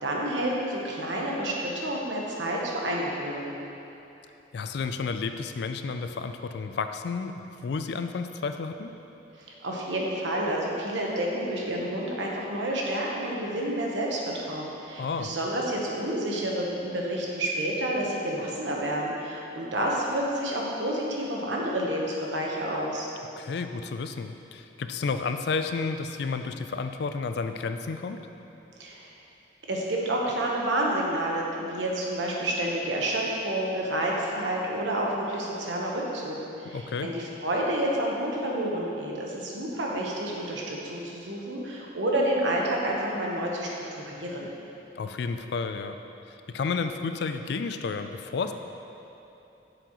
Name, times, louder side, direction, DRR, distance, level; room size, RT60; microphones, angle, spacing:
voice 1, 0.0-3.5 9.6-23.1 28.8-29.1 29.7-44.5, right 1 dB, 75° right, -2 dB, 1.1 m, -29 dB
voice 2, 4.5-8.9 15.0-15.3 23.4-28.3 36.7-37.1 45.0-46.0 46.3-48.5, left 4 dB, 60° left, 8 dB, 0.3 m, -31 dB
7.5 x 7.0 x 3.0 m, 2.9 s
head